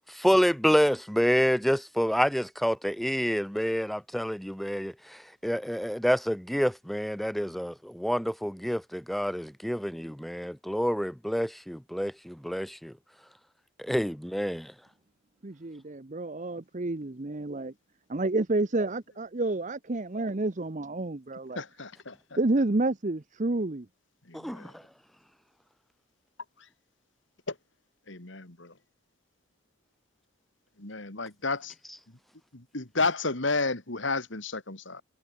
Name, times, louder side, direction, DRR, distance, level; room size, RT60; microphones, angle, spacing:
voice 1, 0.0-12.9 13.8-14.7 24.3-24.7, equal, ahead, 0.5 m, -28 dB
voice 2, 15.4-17.7 18.1-21.6 22.4-23.9, right 2 dB, 40° right, 0.8 m, -29 dB
voice 3, 21.6-22.4 24.3-24.7 27.5-27.6 28.1-28.7 30.8-31.7 32.5-35.0, left 3 dB, 65° left, 2.7 m, -32 dB
head